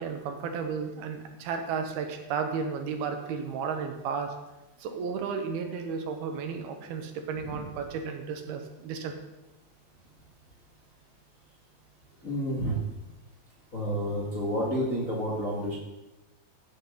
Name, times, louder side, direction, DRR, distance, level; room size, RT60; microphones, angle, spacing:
voice 1, 0.0-4.3 4.8-9.1, right 6 dB, 75° right, 5 dB, 3.1 m, -33 dB
voice 2, 12.2-12.7 13.7-15.8, equal, 35° left, -4 dB, 1.4 m, -30 dB
16.0 x 10.0 x 3.9 m, 1.0 s
omnidirectional pair, 4.6 m